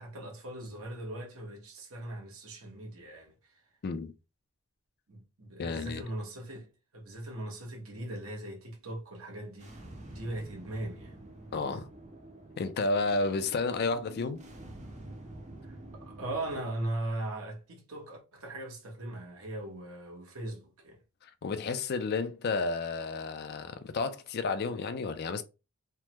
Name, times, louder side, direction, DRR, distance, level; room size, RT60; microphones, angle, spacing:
voice 1, 0.0-3.3 5.1-6.7 6.9-9.7 10.1-11.2 15.6-21.0, right 1 dB, 75° right, 1.1 m, -39 dB
voice 2, 3.8-4.1 5.6-6.0 11.5-11.9 12.6-14.4 21.2-25.4, left 3 dB, 50° left, 0.4 m, -31 dB
sound 1, 9.6-16.6, right 1 dB, 35° right, 0.7 m, -48 dB
3.4 x 2.1 x 2.9 m
head